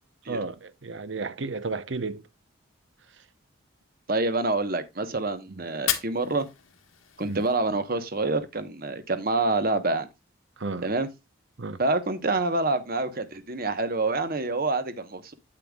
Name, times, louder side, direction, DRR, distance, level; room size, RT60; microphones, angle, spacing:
voice 1, 0.3-2.2 7.2-7.4 10.6-10.9 11.6-11.8, right 3 dB, 60° right, 0.8 m, -32 dB
voice 2, 4.1-6.5 7.2-10.1 10.8-11.1 11.8-15.3, right 2 dB, 45° right, 1.1 m, -27 dB
Fire, 5.7-7.7, left 11 dB, 80° left, 1.5 m, -34 dB
8.9 x 8.7 x 2.4 m
head